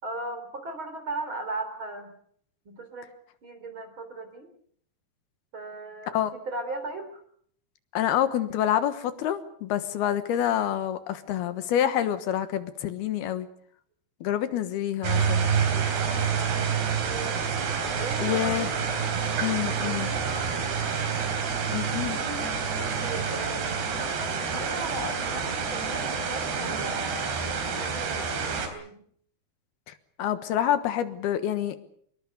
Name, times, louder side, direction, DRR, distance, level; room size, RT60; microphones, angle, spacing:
voice 1, 0.0-2.1 2.7-3.1 3.4-4.5 5.5-7.2 14.2-14.6 16.3-16.7 17.0-17.4 18.0-18.9 19.6-20.0 22.8-29.0, right 2 dB, 30° right, 8 dB, 4.0 m, -38 dB
voice 2, 7.9-13.5 14.2-15.5 18.2-18.7 19.4-20.1 21.7-22.2 29.9-31.8, left 11 dB, 75° left, 11 dB, 3.2 m, -27 dB
sound 1, 15.0-28.7, right 6 dB, 85° right, 5.5 m, -28 dB
24.5 x 22.0 x 6.7 m, 0.62 s
omnidirectional pair, 4.6 m